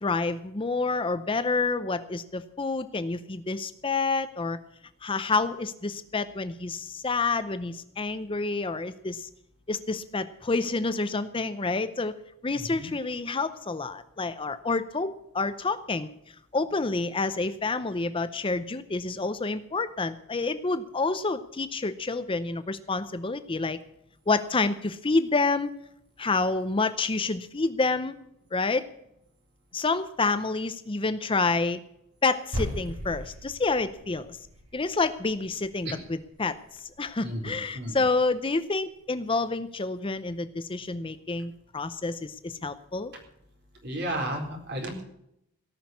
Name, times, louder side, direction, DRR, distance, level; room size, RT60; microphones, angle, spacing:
voice 1, 0.0-4.6 5.0-9.3 9.7-12.1 12.4-16.1 16.5-23.8 24.3-25.7 26.2-28.1 28.5-28.8 29.7-31.8 32.2-34.4 34.7-43.1, left 3 dB, 25° left, 12 dB, 0.6 m, -28 dB
voice 2, 12.5-12.9 35.8-36.0 37.2-38.0 43.8-45.0, right 1 dB, 50° right, 1 dB, 4.2 m, -33 dB
sound 1, 32.5-37.0, equal, 75° right, 7.7 m, -38 dB
18.0 x 6.3 x 9.5 m, 0.78 s
head